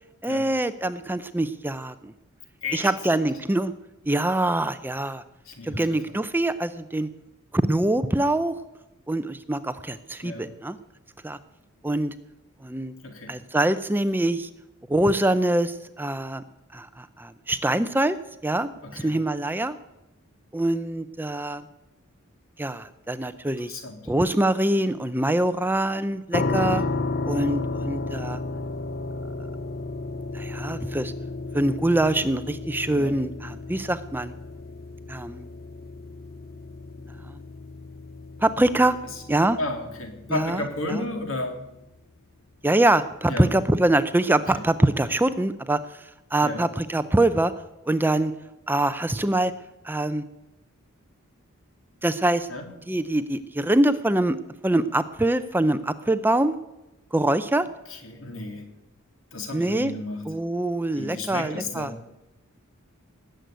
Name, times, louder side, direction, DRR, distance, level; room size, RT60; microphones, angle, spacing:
voice 1, 0.2-2.1 2.7-3.7 4.1-5.2 5.6-7.1 7.5-8.6 9.1-10.8 11.2-11.4 11.8-12.1 12.6-12.9 13.3-14.5 14.9-16.4 16.7-18.2 18.4-19.8 20.5-21.7 22.6-23.8 24.1-26.8 27.3-28.4 30.3-31.1 31.5-34.3 35.1-35.5 37.3-37.4 38.4-39.0 39.3-39.6 40.3-40.6 40.9-41.0 42.6-47.5 47.8-48.3 48.7-49.5 49.8-50.2 52.0-52.5 52.9-54.4 54.6-56.5 57.1-57.7 59.5-59.9 60.3-61.9, right 1 dB, 10° right, 12 dB, 0.5 m, -24 dB
voice 2, 5.4-6.0 10.2-10.5 13.0-13.4 18.8-19.2 23.7-24.1 26.6-26.9 32.9-33.1 39.1-39.2 39.6-41.6 43.3-43.5 44.5-44.6 46.4-46.6 52.5-52.7 57.9-58.7 59.3-60.3 61.0-62.0, left 2 dB, 65° left, 3 dB, 3.4 m, -33 dB
sound 1, 26.3-41.2, left 3 dB, 45° left, 0.7 m, -33 dB
19.5 x 7.8 x 9.2 m, 0.94 s
head